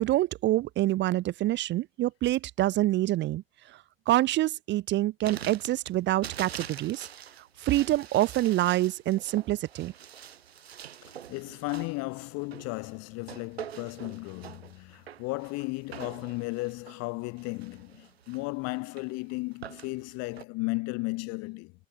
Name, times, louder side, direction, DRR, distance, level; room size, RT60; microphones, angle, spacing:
voice 1, 0.0-3.4 4.1-7.1 7.6-9.9, right 15 dB, 40° right, 0.6 m, -26 dB
sound 1, 5.2-20.4, right 9 dB, 85° right, 1.3 m, -45 dB
voice 2, 11.0-21.7, left 26 dB, 55° left, 1.4 m, -35 dB
hypercardioid pair, 75°, 30 cm